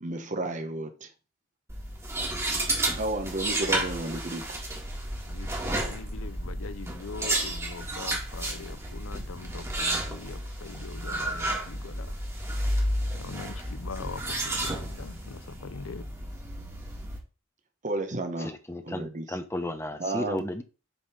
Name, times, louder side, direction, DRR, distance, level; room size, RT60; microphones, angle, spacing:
voice 1, 0.0-1.1 3.0-4.5 17.8-18.5 18.8-19.4 20.0-20.5, right 2 dB, 35° right, 1.1 m, -32 dB
sound 1, 1.7-17.2, right 1 dB, 15° right, 2.0 m, -32 dB
voice 2, 5.3-12.1 13.1-16.1, left 4 dB, 75° left, 0.6 m, -42 dB
voice 3, 18.4-20.6, left 1 dB, 15° left, 0.8 m, -34 dB
7.2 x 3.8 x 5.0 m
head